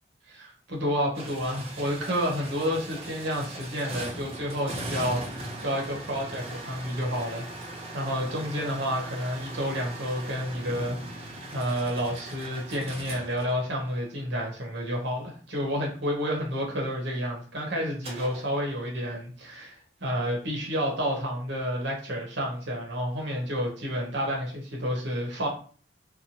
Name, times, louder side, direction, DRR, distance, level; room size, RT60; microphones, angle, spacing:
voice 1, 0.3-25.5, equal, 60° right, -1 dB, 0.9 m, -30 dB
sound 1, 1.1-14.2 18.0-18.5, right 1 dB, 30° right, 0.5 m, -39 dB
2.7 x 2.1 x 2.8 m, 0.42 s
head